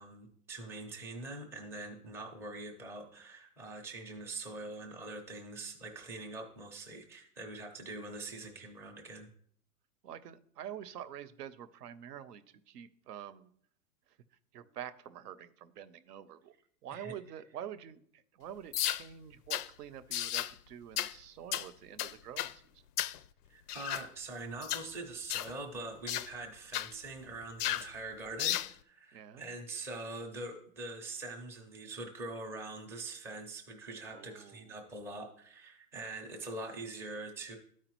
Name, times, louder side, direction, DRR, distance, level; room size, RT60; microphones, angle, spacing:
voice 1, 0.0-9.3 16.9-17.1 23.5-37.6, right 2 dB, 5° right, 0 dB, 0.4 m, -44 dB
voice 2, 10.0-13.5 14.5-16.5 16.8-22.8 29.1-29.5 34.1-34.7, right 9 dB, 85° right, 13 dB, 0.8 m, -47 dB
sound 1, 18.7-19.0 19.5-19.7 20.1-20.5 21.0-21.1 21.5-21.7 22.0-22.5 23.0-23.2 23.7-24.1 24.6-24.9 25.3-25.5 26.1-26.3 26.7-26.9 27.6-27.9 28.4-28.7, left 13 dB, 85° left, 0.5 m, -34 dB
12.5 x 4.8 x 3.0 m, 0.62 s
hypercardioid pair, 145°, 46 cm